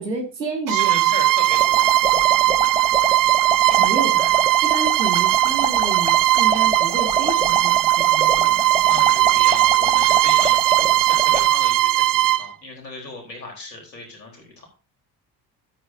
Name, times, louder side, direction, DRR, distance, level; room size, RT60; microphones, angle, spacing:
voice 1, 0.0-1.1 3.8-4.4 4.6-8.6, right 3 dB, 85° right, 3 dB, 2.3 m, -30 dB
voice 2, 0.7-1.9 8.8-14.7, left 2 dB, 85° left, 1 dB, 4.1 m, -36 dB
Bowed string instrument, 0.7-12.5, right 14 dB, 40° right, 0.7 m, -18 dB
sound 1, 1.5-11.5, right 3 dB, 10° right, 1.2 m, -28 dB
14.0 x 8.0 x 2.7 m, 0.33 s
figure-of-eight pair, 50°, 49 cm